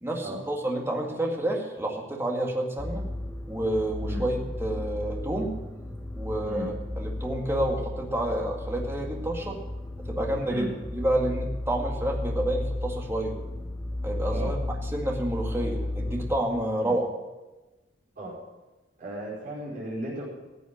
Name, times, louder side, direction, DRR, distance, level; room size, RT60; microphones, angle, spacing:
voice 1, 0.0-3.0 3.5-5.5 6.1-9.6 10.1-13.3 14.0-14.6 14.9-17.1, right 1 dB, 15° right, 0 dB, 2.0 m, -29 dB
sound 1, 2.8-16.4, left 1 dB, 10° left, 1.3 m, -34 dB
voice 2, 19.0-20.2, equal, 50° right, -5 dB, 4.8 m, -35 dB
14.5 x 8.2 x 7.3 m, 1.1 s
head